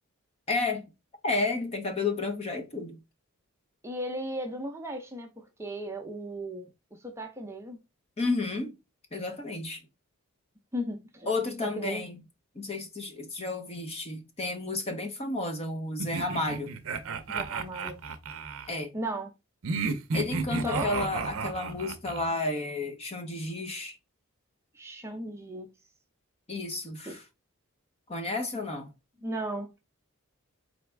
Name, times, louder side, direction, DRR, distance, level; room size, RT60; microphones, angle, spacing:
voice 1, 0.5-0.9 1.2-3.0 8.2-8.7 9.1-9.8 11.3-12.2 12.5-16.7 18.7-18.9 20.1-24.0 26.5-27.2 28.1-28.9, left 3 dB, 25° left, 0.7 m, -32 dB
voice 2, 3.8-7.8 10.7-11.3 11.6-12.0 17.3-18.0 18.9-19.3 20.6-21.0 24.7-25.7 27.1-27.2 29.2-29.7, right 1 dB, 10° right, 0.6 m, -36 dB
sound 1, 16.0-18.7 19.6-22.2, right 4 dB, 65° right, 0.6 m, -32 dB
3.9 x 3.5 x 3.4 m
head